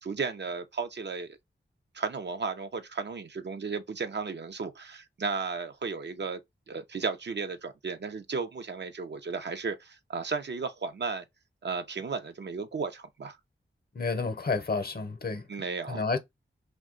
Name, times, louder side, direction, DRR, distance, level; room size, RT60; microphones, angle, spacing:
voice 1, 0.0-1.4 1.9-6.4 6.7-11.2 11.6-13.4 15.5-16.2, right 4 dB, 55° right, 0.6 m, -34 dB
voice 2, 13.9-15.4 15.9-16.2, left 4 dB, 50° left, 0.7 m, -30 dB
2.7 x 2.2 x 3.7 m
cardioid pair, 55°, 21 cm